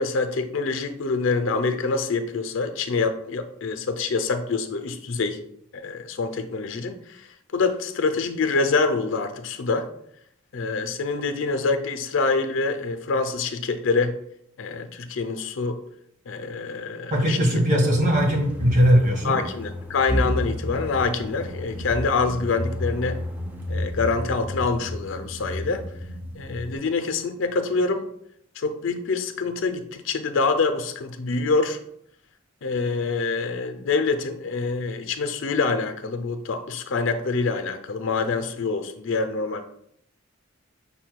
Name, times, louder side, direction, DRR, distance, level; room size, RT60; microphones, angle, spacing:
voice 1, 0.0-5.4 5.7-7.3 7.5-9.9 10.5-14.2 14.6-15.8 16.3-17.4 17.7-17.8 19.2-23.2 23.7-25.8 26.3-28.0 28.6-31.8 32.6-39.6, left 4 dB, 70° left, 8 dB, 0.5 m, -26 dB
voice 2, 17.1-19.4, equal, 40° right, 0 dB, 1.3 m, -19 dB
sound 1, 17.9-26.8, left 1 dB, 10° right, 0.5 m, -31 dB
5.5 x 2.2 x 4.5 m, 0.71 s
head